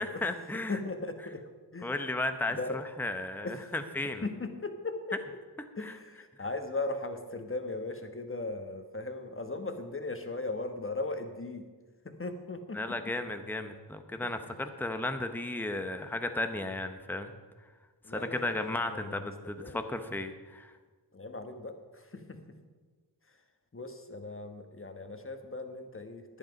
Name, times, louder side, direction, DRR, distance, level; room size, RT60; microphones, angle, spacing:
voice 1, 0.0-0.8 1.8-4.2 5.8-5.9 12.7-17.3 18.1-20.7, left 2 dB, 5° left, 7 dB, 0.8 m, -34 dB
voice 2, 0.7-1.4 1.7-1.9 2.5-2.8 3.4-3.7 4.2-5.2 5.8-11.7 12.0-13.1 14.2-14.5 18.0-19.3 19.6-19.8 21.1-22.4 23.3-23.4 23.7-26.4, left 2 dB, 30° left, 7 dB, 1.3 m, -38 dB
11.0 x 10.0 x 5.3 m, 1.4 s
wide cardioid pair, 60°, 42 cm